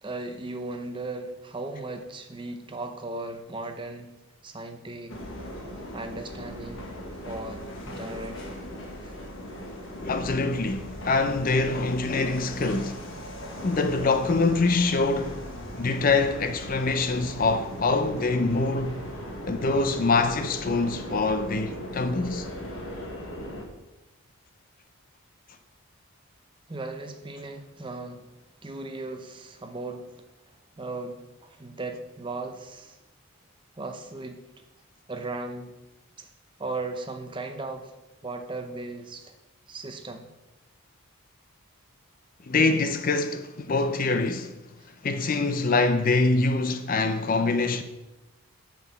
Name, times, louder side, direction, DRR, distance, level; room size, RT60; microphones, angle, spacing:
voice 1, 0.0-4.1 4.4-5.2 5.9-6.9 7.2-8.4 26.7-28.3 28.6-30.1 30.8-33.0 33.8-34.4 35.1-35.7 36.2-36.3 36.6-37.9 38.2-39.3 39.7-40.3 44.8-44.9, right 2 dB, 20° right, 0.6 m, -37 dB
sound 1, 5.1-23.7, equal, 55° left, 1.3 m, -38 dB
voice 2, 10.0-13.0 13.6-15.4 15.7-19.0 19.5-22.5 42.5-44.5 45.0-47.8, left 3 dB, 40° left, 0.4 m, -24 dB
6.2 x 5.5 x 7.0 m
head